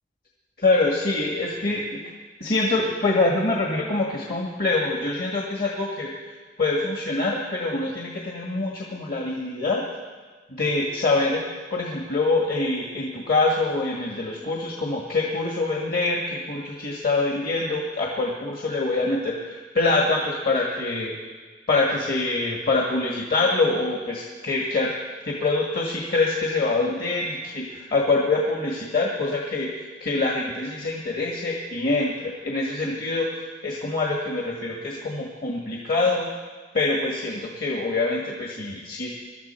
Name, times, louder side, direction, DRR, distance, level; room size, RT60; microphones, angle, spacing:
voice 1, 0.6-1.8 2.4-6.1 6.6-9.8 10.6-11.4 11.7-21.1 21.7-25.0 25.3-36.3 36.7-39.1, left 3 dB, 55° left, -2 dB, 1.7 m, -25 dB
22.0 x 12.5 x 4.4 m, 1.4 s
head